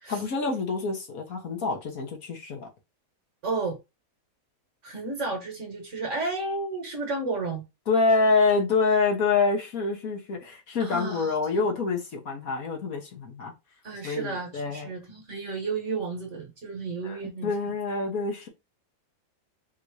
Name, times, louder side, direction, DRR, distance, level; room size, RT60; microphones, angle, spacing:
voice 1, 0.1-2.7 7.9-13.5 14.0-14.9 17.0-18.5, left 4 dB, 60° left, 1.5 m, -26 dB
voice 2, 3.4-3.8 4.8-7.6 10.8-11.3 13.8-17.5, right 3 dB, 50° right, 1.3 m, -32 dB
3.7 x 2.7 x 4.6 m
omnidirectional pair, 1.8 m